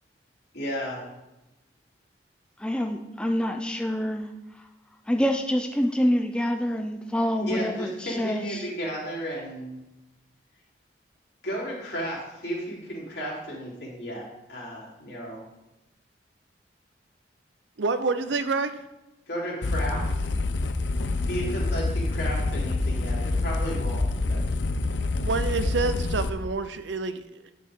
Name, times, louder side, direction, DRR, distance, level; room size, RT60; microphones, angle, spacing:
voice 1, 0.5-1.1 7.4-9.8 11.4-15.4 19.3-20.3 21.2-24.4, equal, 70° left, 3.4 m, -33 dB
voice 2, 2.6-4.3 5.1-8.7, equal, 5° left, 0.4 m, -26 dB
voice 3, 17.8-18.8 24.9-27.5, right 4 dB, 90° right, 0.6 m, -28 dB
sound 1, 19.6-26.3, left 2 dB, 90° left, 0.6 m, -27 dB
9.9 x 6.7 x 3.7 m
head